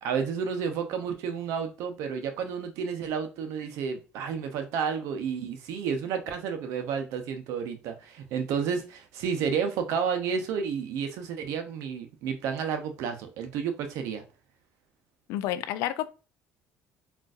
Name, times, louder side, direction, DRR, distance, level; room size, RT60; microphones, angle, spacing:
voice 1, 0.0-14.2, right 6 dB, 75° right, 0.7 m, -31 dB
voice 2, 15.3-16.1, left 13 dB, 80° left, 0.4 m, -30 dB
3.8 x 2.5 x 2.4 m
supercardioid pair, 90°, 5 cm